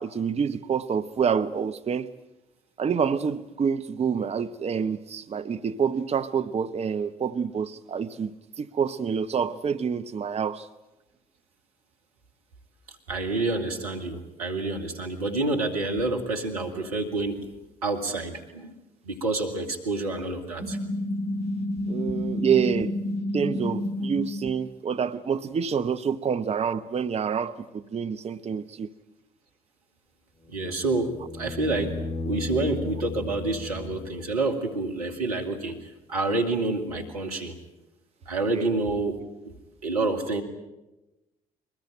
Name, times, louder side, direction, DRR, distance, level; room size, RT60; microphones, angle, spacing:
voice 1, 0.0-2.1 2.8-10.7 21.9-23.0 23.3-28.9 38.5-38.8, right 7 dB, 35° right, 12 dB, 0.9 m, -27 dB
voice 2, 12.9-17.4 17.8-18.8 19.0-20.8 30.5-32.0 32.2-37.6 38.3-39.2 39.8-40.4, right 2 dB, 90° right, 4 dB, 2.1 m, -28 dB
sound 1, 20.6-24.5, left 1 dB, 60° right, 6.4 m, -29 dB
sound 2, 30.4-34.6 37.0-37.1, left 3 dB, 25° left, 4.3 m, -35 dB
23.0 x 20.0 x 8.8 m, 1.0 s
hypercardioid pair, 50°, 19 cm